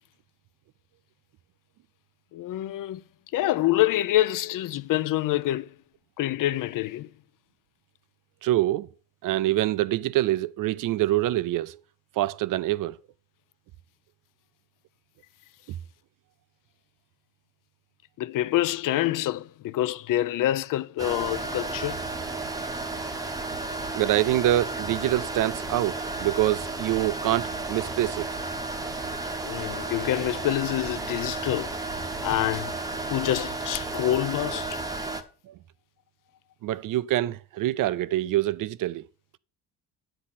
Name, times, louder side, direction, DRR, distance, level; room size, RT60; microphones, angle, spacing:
voice 1, 2.3-3.0 3.3-5.7 6.2-7.1 18.2-22.0 29.4-31.8 32.2-32.8 33.1-34.8, left 14 dB, 55° left, 0.5 m, -26 dB
voice 2, 8.4-8.9 9.2-11.8 12.2-13.0 24.0-28.3 35.5-35.6 36.6-39.0, right 14 dB, 55° right, 0.5 m, -25 dB
sound 1, 21.0-35.2, right 2 dB, 10° right, 0.8 m, -33 dB
10.0 x 8.7 x 4.2 m
cardioid pair, 175°, 39 cm